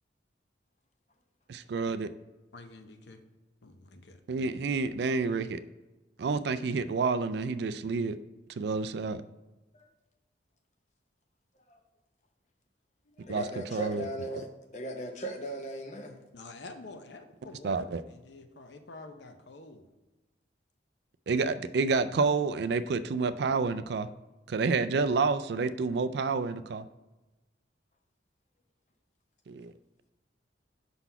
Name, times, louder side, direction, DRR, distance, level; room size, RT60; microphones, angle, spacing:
voice 1, 1.5-2.1 4.3-5.6 6.2-8.2 8.6-9.2 13.3-14.1 17.6-18.0 21.3-24.1 24.5-26.9 29.5-29.7, right 4 dB, 60° right, 0.3 m, -29 dB
voice 2, 2.5-3.2 3.6-4.2 16.3-19.9, left 2 dB, 70° left, 0.7 m, -48 dB
voice 3, 13.2-16.1, right 1 dB, 40° left, 0.8 m, -37 dB
5.8 x 4.0 x 5.5 m
head